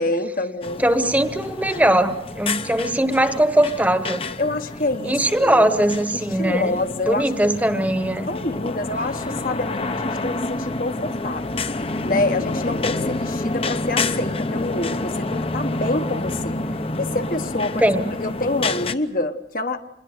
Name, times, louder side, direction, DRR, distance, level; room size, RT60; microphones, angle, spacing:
voice 1, 0.0-0.9 4.4-5.7 6.1-7.5 8.3-11.6 12.1-16.6 17.0-17.9 18.2-19.8, left 2 dB, 50° left, 7 dB, 1.2 m, -26 dB
sound 1, 0.6-18.9, left 2 dB, 30° left, 0.8 m, -28 dB
voice 2, 0.8-4.2 5.0-6.8 7.1-8.3 17.8-18.1, right 1 dB, 10° right, 9 dB, 1.1 m, -20 dB
27.0 x 21.5 x 6.6 m, 0.91 s
head